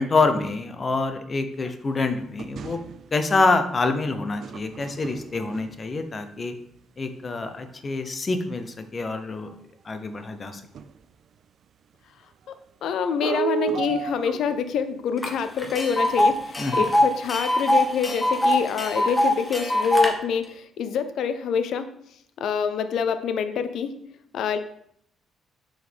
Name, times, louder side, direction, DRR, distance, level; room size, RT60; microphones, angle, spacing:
voice 1, 0.0-2.8 3.1-6.5 7.0-9.5 9.8-10.6 16.6-16.8, left 3 dB, 35° left, 8 dB, 0.8 m, -26 dB
sound 1, 2.4-3.3 4.4-6.1 8.0-8.1 8.8-8.9 9.2-9.3 9.5-9.6 10.7-11.1 13.2-14.8 15.6-16.9 17.3-17.4 17.8-17.9 18.3-18.5, right 10 dB, 65° right, 0.3 m, -34 dB
voice 2, 12.8-21.9 22.4-23.9 24.3-24.6, left 7 dB, 75° left, 10 dB, 0.5 m, -26 dB
Tick, 15.2-15.3 15.6-20.1, left 1 dB, 20° left, 1.1 m, -22 dB
6.2 x 4.8 x 3.5 m, 0.69 s
cardioid pair, 90°, 0 cm